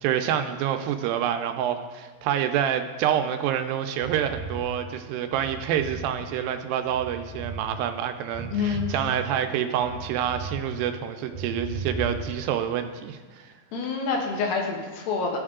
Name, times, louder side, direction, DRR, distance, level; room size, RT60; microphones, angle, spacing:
voice 1, 0.0-13.5, right 9 dB, 80° right, 7 dB, 2.2 m, -27 dB
sound 1, 4.0-6.1 6.5-7.6 8.0-10.6 10.9-12.4, right 3 dB, 25° left, 0.6 m, -37 dB
voice 2, 8.5-8.9 13.7-15.4, left 5 dB, 75° left, 1 dB, 2.9 m, -27 dB
15.0 x 5.4 x 3.7 m, 1.4 s
omnidirectional pair, 4.3 m